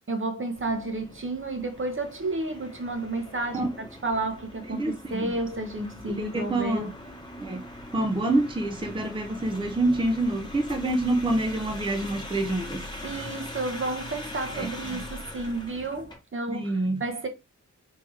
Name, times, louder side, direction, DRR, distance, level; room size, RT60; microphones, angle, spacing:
voice 1, 0.1-6.9 13.0-17.3, right 2 dB, 40° right, 0.9 m, -31 dB
sound 1, 0.5-16.2, left 1 dB, 15° left, 1.3 m, -42 dB
voice 2, 4.7-5.3 6.0-6.8 7.4-7.6 7.9-12.8 14.5-15.0 16.5-17.0, right 2 dB, 15° right, 0.6 m, -27 dB
3.6 x 2.9 x 3.2 m
cardioid pair, 65°, 31 cm